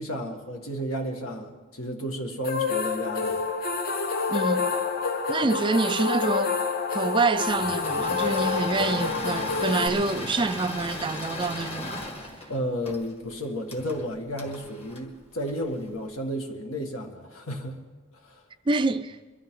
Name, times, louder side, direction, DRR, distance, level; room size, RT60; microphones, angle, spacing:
voice 1, 0.0-3.4 12.5-17.8 18.2-18.4, equal, 80° left, 1.8 m, -32 dB
sound 1, 2.4-9.9, left 5 dB, 45° left, 1.0 m, -27 dB
voice 2, 4.3-4.7 5.3-6.6 6.9-12.3 18.7-19.2, right 3 dB, 25° right, 0.4 m, -26 dB
Engine / Mechanisms, 7.5-15.9, left 1 dB, 30° left, 1.6 m, -37 dB
22.5 x 13.0 x 3.7 m
head